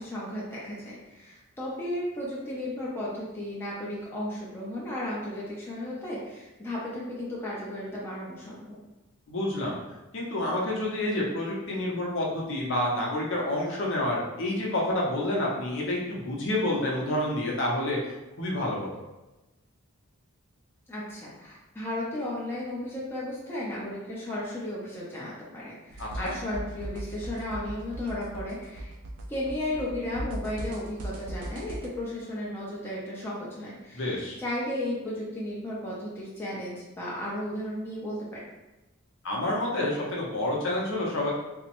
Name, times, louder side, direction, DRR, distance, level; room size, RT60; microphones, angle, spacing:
voice 1, 0.0-8.8 20.9-28.9 29.3-38.4, left 1 dB, 10° left, -7 dB, 0.6 m, -34 dB
voice 2, 9.3-9.8 10.1-18.0 18.4-19.0 26.0-26.4 33.9-34.4 39.2-41.3, left 1 dB, 60° left, -3 dB, 0.7 m, -28 dB
sound 1, 25.9-31.9, right 1 dB, 85° right, 0.4 m, -37 dB
3.5 x 2.1 x 2.9 m, 1.0 s
head